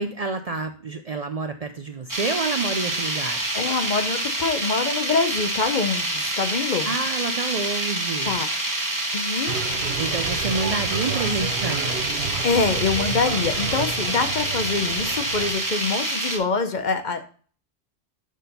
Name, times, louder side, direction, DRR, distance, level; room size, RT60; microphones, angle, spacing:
voice 1, 0.0-3.4 6.8-8.3 10.0-12.1, right 4 dB, 50° right, 7 dB, 0.5 m, -28 dB
sound 1, 2.1-16.4, right 1 dB, 20° right, 1.0 m, -27 dB
voice 2, 3.5-6.9 8.2-8.5 9.1-9.6 12.4-17.4, left 4 dB, 50° left, 8 dB, 0.7 m, -25 dB
sound 2, 9.5-15.5, right 6 dB, 75° right, 0.9 m, -31 dB
6.3 x 4.3 x 5.1 m, 0.42 s
omnidirectional pair, 1.1 m